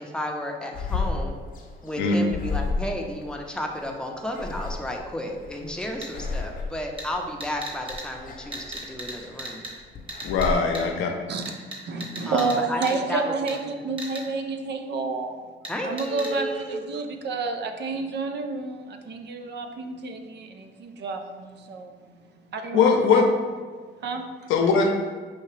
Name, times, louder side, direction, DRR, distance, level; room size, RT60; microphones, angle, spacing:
voice 1, 0.0-1.4 1.8-9.6 12.3-13.3 13.6-13.9 15.7-16.8, left 1 dB, 5° left, 1 dB, 0.6 m, -32 dB
sound 1, 0.7-10.5, left 4 dB, 45° left, 0.7 m, -33 dB
sound 2, 6.0-6.1 7.0-7.1 7.4-8.0 8.5-9.1 9.4-9.7 10.1-10.5 10.7-10.8 11.4-12.5 12.8-12.9 13.5-13.6 14.0-14.2 15.6-15.7 16.0-16.3, right 1 dB, 25° right, 1.3 m, -35 dB
voice 2, 10.2-11.1 22.7-23.3 24.5-24.9, left 5 dB, 85° left, 2 dB, 0.6 m, -20 dB
voice 3, 11.9-15.4 15.8-22.0 22.5-23.2 24.0-24.2, right 4 dB, 60° right, 5 dB, 0.5 m, -30 dB
5.6 x 2.8 x 3.2 m, 1.5 s
cardioid pair, 90°, 20 cm